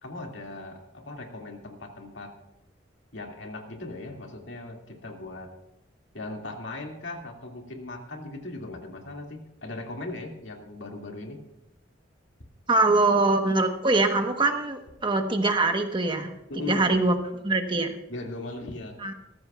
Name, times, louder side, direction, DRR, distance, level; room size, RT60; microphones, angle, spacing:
voice 1, 0.0-2.3 3.1-5.5 6.1-11.4 16.5-16.9 18.1-19.0, left 2 dB, 75° left, 2 dB, 2.3 m, -38 dB
voice 2, 12.7-16.3 16.6-17.1 17.4-18.0 19.0-19.1, right 2 dB, 25° right, 6 dB, 1.2 m, -23 dB
19.5 x 14.0 x 2.4 m, 0.91 s
head